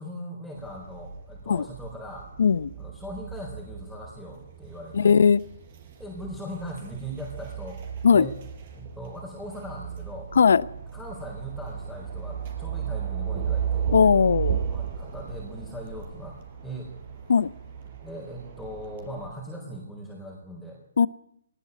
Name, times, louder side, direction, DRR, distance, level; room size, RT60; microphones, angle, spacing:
voice 1, 0.0-2.3 2.8-5.2 6.0-7.8 8.1-8.4 8.8-10.3 10.9-13.9 14.7-16.4 16.6-16.9 17.8-20.8, equal, ahead, -4 dB, 4.3 m, -39 dB
sound 1, 0.6-19.3, right 8 dB, 40° right, 5.3 m, -35 dB
voice 2, 2.4-2.7 4.9-5.4 8.0-8.3 10.4-10.6 13.9-14.6 17.3-17.5 21.0-21.1, left 6 dB, 65° left, 19 dB, 0.8 m, -18 dB
19.5 x 18.5 x 8.2 m, 0.75 s
hypercardioid pair, 145°, 0 cm